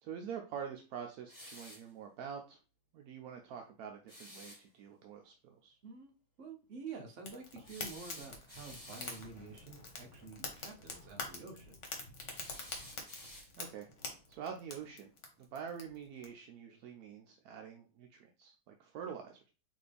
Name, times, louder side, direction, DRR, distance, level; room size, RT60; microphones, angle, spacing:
voice 1, 0.0-2.6 2.9-5.8 13.6-15.1 15.4-19.5, right 7 dB, 80° right, 3 dB, 1.1 m, -46 dB
sound 1, 1.3-1.9 4.1-4.6 7.6-9.3 12.3-13.8, left 1 dB, 15° left, 1.4 m, -52 dB
voice 2, 5.8-6.1 6.4-11.8, right 4 dB, 60° right, 2 dB, 1.1 m, -49 dB
Fire, 7.2-16.3, left 3 dB, 55° left, 1.3 m, -46 dB
4.2 x 3.0 x 3.4 m, 0.35 s
omnidirectional pair, 1.6 m